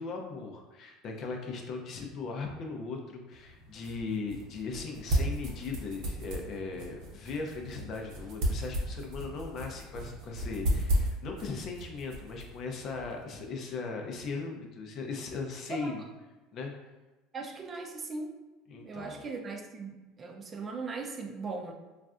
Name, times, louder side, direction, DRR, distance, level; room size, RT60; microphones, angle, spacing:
voice 1, 0.0-16.1 16.5-16.7 18.7-19.2, left 4 dB, 50° left, 2 dB, 0.6 m, -38 dB
sound 1, 3.3-13.2, equal, 65° right, 0.7 m, -35 dB
voice 2, 17.3-18.4 18.7-21.7, right 4 dB, 35° right, 2 dB, 0.5 m, -39 dB
4.0 x 2.4 x 2.4 m, 1.2 s
hypercardioid pair, 85°, 0 cm